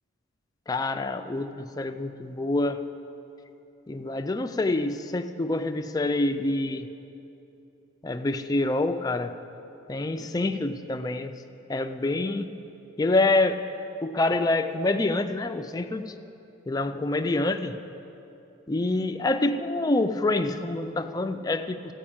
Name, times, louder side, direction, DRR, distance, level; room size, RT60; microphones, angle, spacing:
voice 1, 0.7-2.8 3.9-6.9 8.0-9.3 9.9-11.3 11.7-12.5 13.0-13.6 14.0-16.1 16.7-17.7 18.7-21.9, left 2 dB, 20° left, 7 dB, 0.4 m, -26 dB
14.0 x 5.3 x 8.7 m, 2.9 s
head